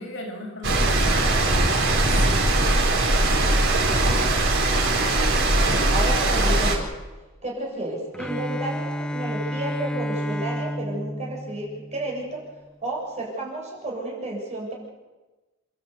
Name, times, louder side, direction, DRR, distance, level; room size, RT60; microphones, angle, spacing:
voice 1, 0.0-2.3, left 1 dB, 65° left, 0 dB, 6.7 m, -37 dB
sound 1, 0.6-6.8, right 2 dB, 65° right, 4.6 m, -20 dB
voice 2, 5.5-6.8 7.4-12.4 12.8-14.7, right 2 dB, 35° right, -3 dB, 7.7 m, -32 dB
Bowed string instrument, 8.1-12.2, equal, 5° left, 0.8 m, -30 dB
29.5 x 12.5 x 8.3 m, 1.1 s
head